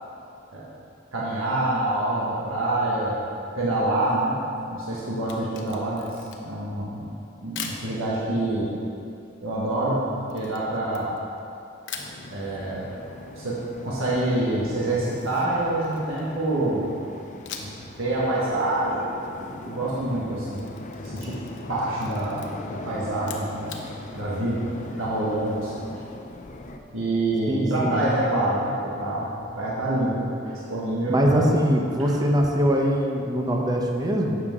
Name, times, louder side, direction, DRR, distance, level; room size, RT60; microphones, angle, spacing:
voice 1, 1.1-3.2 3.5-4.4 4.6-7.1 7.4-8.7 9.4-11.1 12.3-13.0 13.3-16.8 17.6-17.7 18.0-19.1 19.4-20.6 21.0-21.4 21.7-22.4 22.7-23.8 24.1-25.9 26.9-31.5, right 1 dB, 80° right, -6 dB, 1.5 m, -26 dB
Camera, 5.2-6.6 7.6-7.9 10.3-11.5 11.9-12.2 14.8-16.4 17.5-17.9 18.2-18.3 20.3-21.7 22.0-22.5 23.2-23.9, left 6 dB, 65° left, 0.9 m, -40 dB
sound 1, 12.0-26.8, left 2 dB, 40° left, 0.6 m, -41 dB
voice 2, 27.5-28.0 31.1-34.4, equal, 20° right, 0 dB, 0.8 m, -22 dB
11.5 x 7.9 x 3.7 m, 2.7 s
head